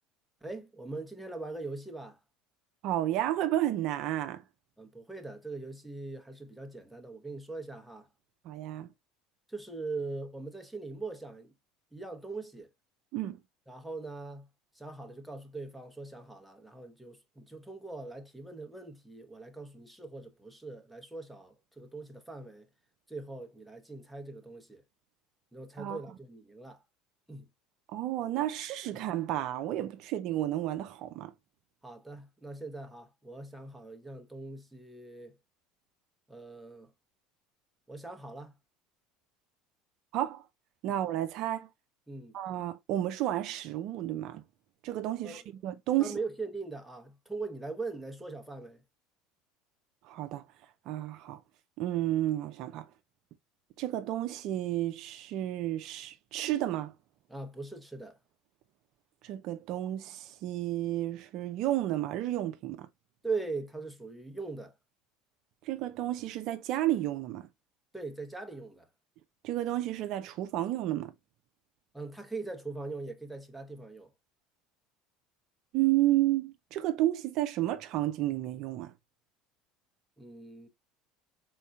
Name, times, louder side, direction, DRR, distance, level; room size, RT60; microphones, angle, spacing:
voice 1, 0.4-2.2 4.8-8.1 9.5-11.5 11.9-12.7 13.7-14.5 14.7-22.7 23.1-24.8 25.5-26.8 27.3-27.5 28.9-29.0 31.8-35.3 36.3-36.9 37.9-38.5 42.1-42.3 45.2-45.4 46.0-48.8 57.3-58.2 63.2-64.7 67.9-68.9 71.9-74.1 80.2-80.7, right 3 dB, ahead, 0.9 m, -41 dB
voice 2, 2.8-4.4 8.4-8.9 13.1-13.4 25.8-26.0 27.9-31.3 40.1-40.4 40.8-41.7 42.3-44.4 44.8-46.2 50.1-50.4 50.9-51.4 51.8-52.9 53.8-56.9 59.2-62.9 65.6-67.4 69.4-71.1 75.7-78.9, right 14 dB, 60° right, 0.5 m, -31 dB
4.1 x 3.8 x 2.3 m
supercardioid pair, 90°, 0 cm